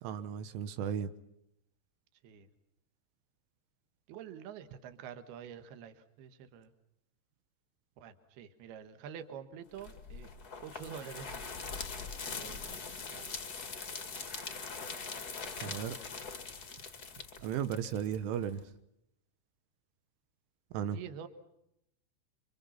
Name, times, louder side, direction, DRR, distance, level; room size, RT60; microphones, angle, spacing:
voice 1, 0.0-1.1 15.6-16.0 17.4-18.7 20.7-21.0, right 8 dB, 85° right, 11 dB, 3.6 m, -35 dB
voice 2, 4.1-6.7 8.0-10.3 10.6-11.5 12.3-12.8 13.1-13.4 20.9-21.3, right 8 dB, 65° right, 9 dB, 3.3 m, -47 dB
sound 1, 9.8-18.6, left 5 dB, 60° left, 1.0 m, -42 dB
28.5 x 26.0 x 5.8 m, 0.80 s
omnidirectional pair, 5.5 m